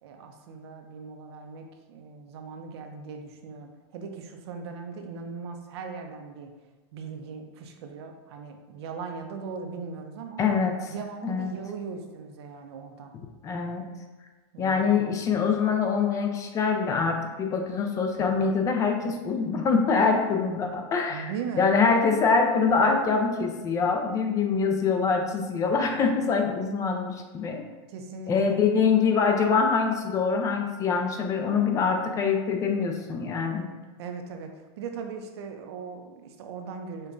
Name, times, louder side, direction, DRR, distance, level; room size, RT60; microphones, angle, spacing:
voice 1, 0.0-6.5 6.9-10.4 10.9-13.1 14.5-14.8 21.1-21.7 27.9-28.6 34.0-37.1, right 5 dB, 75° right, 4 dB, 0.5 m, -39 dB
voice 2, 10.4-10.9 11.2-11.6 13.4-13.9 14.6-21.3 21.6-27.6 28.3-33.7, left 5 dB, 25° left, 4 dB, 0.4 m, -24 dB
5.2 x 2.2 x 2.5 m, 1.2 s
supercardioid pair, 140°, 14 cm